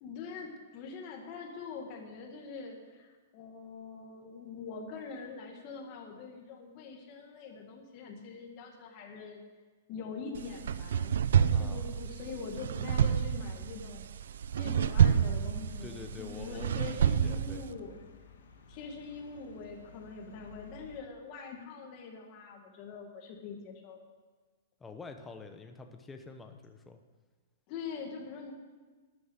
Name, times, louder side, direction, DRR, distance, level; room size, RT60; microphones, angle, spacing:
voice 1, 0.0-9.4 9.9-14.1 14.6-18.0 18.7-24.0 27.7-28.5, left 5 dB, 30° left, 1 dB, 1.9 m, -43 dB
sound 1, 10.4-17.7, right 8 dB, 75° right, 0.5 m, -29 dB
voice 2, 11.5-12.0 15.8-17.6 24.8-27.0, left 4 dB, 10° left, 5 dB, 0.8 m, -47 dB
sound 2, 15.5-21.0, left 4 dB, 85° left, 1.9 m, -55 dB
12.5 x 9.5 x 8.2 m, 1.4 s
hypercardioid pair, 170°, 0 cm